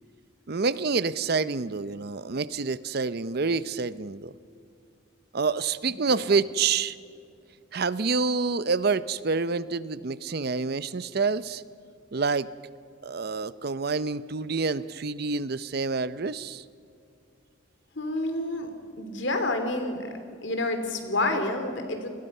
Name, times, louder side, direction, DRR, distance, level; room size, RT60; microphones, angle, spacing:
voice 1, 0.5-4.3 5.3-7.0 7.7-11.6 12.1-12.5 13.0-16.6, right 4 dB, 50° right, 16 dB, 0.6 m, -27 dB
voice 2, 18.0-18.7 19.0-20.1 20.4-22.1, left 2 dB, 65° left, 7 dB, 3.0 m, -28 dB
29.5 x 20.5 x 5.5 m, 2.4 s
head